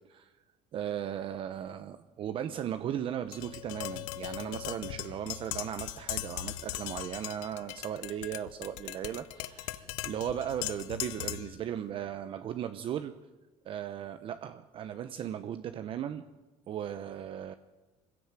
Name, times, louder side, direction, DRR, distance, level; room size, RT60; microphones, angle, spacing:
voice 1, 0.7-13.1 13.6-16.2 16.7-17.5, right 10 dB, 45° right, 10 dB, 0.9 m, -37 dB
Tap, 3.3-11.6, left 16 dB, 90° left, 1.0 m, -39 dB
24.5 x 16.0 x 9.0 m, 1.1 s
cardioid pair, 135°, 13 cm